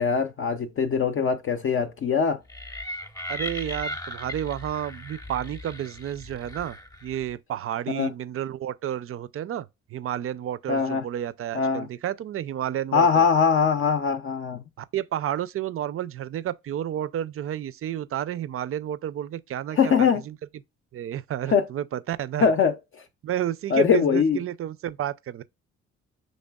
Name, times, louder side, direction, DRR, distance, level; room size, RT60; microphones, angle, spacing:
voice 1, 0.0-2.4 7.9-8.1 10.7-11.0 11.5-11.9 12.9-14.6 19.8-20.2 21.5-21.7 22.4-23.0 23.7-24.4, left 6 dB, 45° left, 0.5 m, -22 dB
sound 1, 2.5-7.3, left 1 dB, 10° left, 0.7 m, -37 dB
voice 2, 3.3-13.3 14.8-20.4 20.9-22.5 23.2-25.4, right 11 dB, 45° right, 0.4 m, -31 dB
5.2 x 3.2 x 2.2 m
cardioid pair, 90°, 30 cm